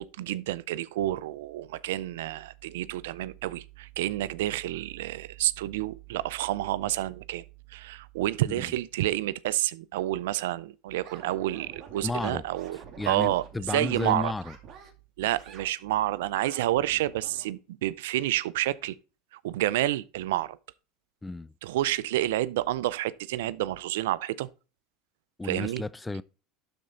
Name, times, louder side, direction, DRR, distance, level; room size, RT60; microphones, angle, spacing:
voice 1, 0.0-7.4 7.7-13.4 13.7-14.3 15.2-19.0 19.4-20.6 21.6-24.5 25.4-25.8, right 15 dB, 85° right, 0.4 m, -29 dB
sound 1, 11.0-14.1 14.4-14.9 15.2-15.7 16.2-17.5, right 6 dB, 45° right, 2.5 m, -49 dB
voice 2, 12.0-12.4 13.0-14.6 21.2-21.5 25.4-26.2, left 2 dB, 10° left, 0.4 m, -33 dB
12.0 x 4.4 x 3.8 m
supercardioid pair, 105°, 0 cm